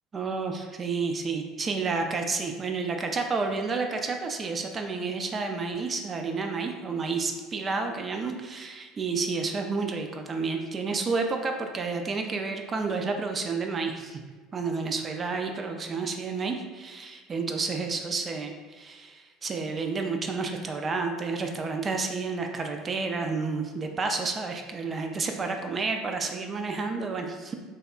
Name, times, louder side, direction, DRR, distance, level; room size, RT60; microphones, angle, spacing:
voice 1, 0.1-14.2 14.5-27.5, right 4 dB, 30° right, 4 dB, 0.3 m, -30 dB
3.4 x 2.1 x 2.4 m, 1.3 s
figure-of-eight pair, 65°, 0 cm